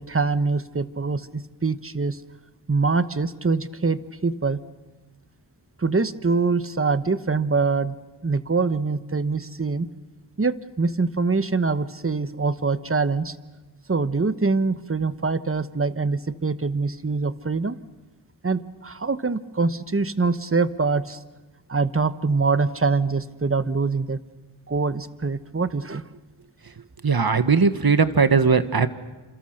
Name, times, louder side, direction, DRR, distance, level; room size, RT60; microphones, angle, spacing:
voice 1, 0.0-2.2 2.7-4.6 5.8-8.0 8.2-9.9 10.4-13.4 13.9-17.8 18.4-21.2 21.7-24.2 24.7-26.0, right 4 dB, 30° right, 13 dB, 1.1 m, -24 dB
voice 2, 27.0-28.9, right 5 dB, 60° right, 11 dB, 1.4 m, -19 dB
29.0 x 27.5 x 6.6 m, 1.2 s
wide cardioid pair, 55°, 42 cm